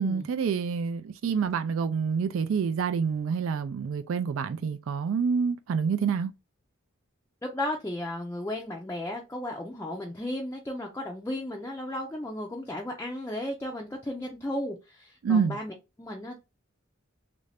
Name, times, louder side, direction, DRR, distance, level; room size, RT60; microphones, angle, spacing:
voice 1, 0.0-6.3 15.2-15.6, right 6 dB, 80° right, 0.3 m, -27 dB
voice 2, 7.4-16.4, left 1 dB, 10° left, 0.4 m, -34 dB
3.2 x 2.5 x 3.3 m
head